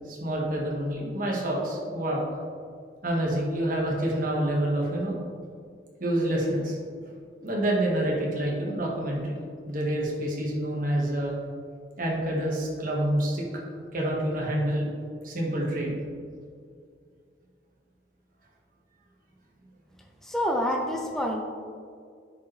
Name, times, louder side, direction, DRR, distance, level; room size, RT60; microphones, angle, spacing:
voice 1, 0.0-2.2 3.0-5.2 6.0-6.8 7.4-9.4 9.7-11.3 12.0-13.5 13.9-14.9 15.2-15.9, right 1 dB, 45° right, -2 dB, 1.5 m, -27 dB
voice 2, 20.2-21.4, equal, ahead, 0 dB, 0.5 m, -27 dB
10.5 x 5.2 x 3.2 m, 2.2 s
head